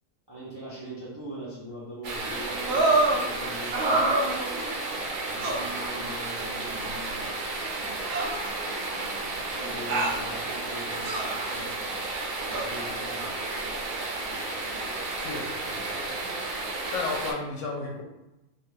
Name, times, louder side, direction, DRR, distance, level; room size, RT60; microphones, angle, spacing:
voice 1, 0.3-4.1 5.3-7.3 8.3-11.8 12.5-13.5, right 1 dB, 30° right, -8 dB, 0.5 m, -42 dB
sound 1, 2.0-17.3, right 2 dB, 80° right, 1.1 m, -33 dB
sound 2, 2.7-3.2 3.7-4.7 5.4-5.7 6.7-6.8 8.1-9.0 9.9-10.2 11.1-11.5 12.5-12.7, right 2 dB, 65° right, 0.8 m, -26 dB
voice 2, 15.2-16.3 16.9-18.0, left 3 dB, 70° left, 0 dB, 0.9 m, -34 dB
2.5 x 2.3 x 3.3 m, 0.96 s
omnidirectional pair, 1.4 m